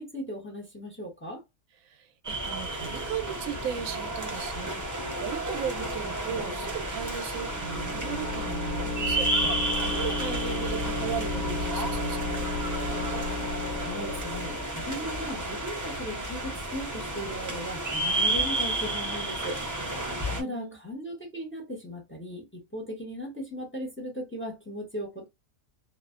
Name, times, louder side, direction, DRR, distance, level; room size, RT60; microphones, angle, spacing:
voice 1, 0.0-1.4 13.8-19.6 20.4-25.3, equal, 10° left, 0.6 m, -37 dB
voice 2, 1.8-12.5 20.3-20.8, right 8 dB, 85° right, 1.0 m, -37 dB
sound 1, 2.2-20.4, right 2 dB, 30° right, 0.3 m, -32 dB
sound 2, 7.2-14.9, left 3 dB, 65° left, 0.7 m, -34 dB
2.5 x 2.1 x 2.4 m
omnidirectional pair, 1.4 m